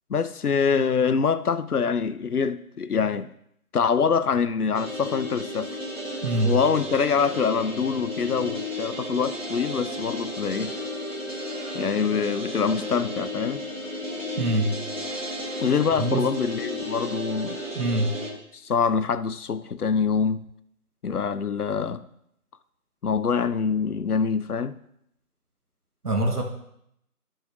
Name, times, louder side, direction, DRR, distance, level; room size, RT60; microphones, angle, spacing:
voice 1, 0.1-3.3 3.7-5.8 6.4-10.7 11.7-13.6 15.6-17.6 18.5-20.4 21.0-22.0 23.0-24.8, left 6 dB, 80° left, 0.6 m, -25 dB
sound 1, 4.7-18.3, left 1 dB, 55° right, 1.5 m, -33 dB
voice 2, 6.2-6.6 14.4-14.7 16.0-16.2 17.7-18.1 26.0-26.4, right 1 dB, 80° right, 1.3 m, -23 dB
12.5 x 6.1 x 2.6 m
figure-of-eight pair, 175°, 45 cm